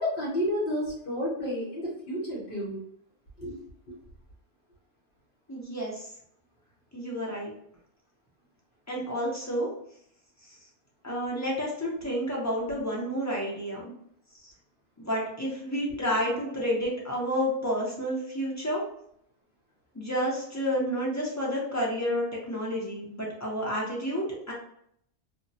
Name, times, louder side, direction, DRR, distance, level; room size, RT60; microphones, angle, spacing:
voice 1, 0.0-2.8 3.4-3.9, equal, 55° left, -5 dB, 0.9 m, -31 dB
voice 2, 5.5-6.1 6.9-7.5 8.9-9.7 11.0-13.8 14.4-14.5 15.0-18.8 19.9-24.5, equal, 20° left, -4 dB, 0.5 m, -30 dB
2.6 x 2.1 x 2.6 m, 0.69 s
omnidirectional pair, 1.2 m